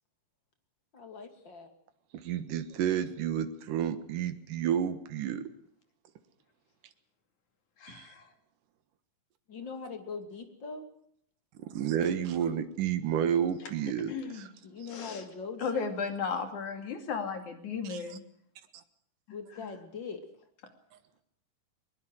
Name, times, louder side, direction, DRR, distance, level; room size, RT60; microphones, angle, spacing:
voice 1, 0.9-1.7 9.5-10.9 14.6-15.9 19.3-20.2, left 5 dB, 35° left, 6 dB, 3.2 m, -41 dB
voice 2, 2.2-5.4 7.9-8.1 11.6-14.1 17.9-18.0, right 9 dB, 80° right, 10 dB, 3.1 m, -30 dB
voice 3, 7.8-8.3 13.6-13.7 14.1-14.5 14.9-15.3 15.6-18.2 19.3-19.8, left 5 dB, 65° left, 6 dB, 4.0 m, -35 dB
22.0 x 21.5 x 6.3 m, 0.66 s
omnidirectional pair, 3.7 m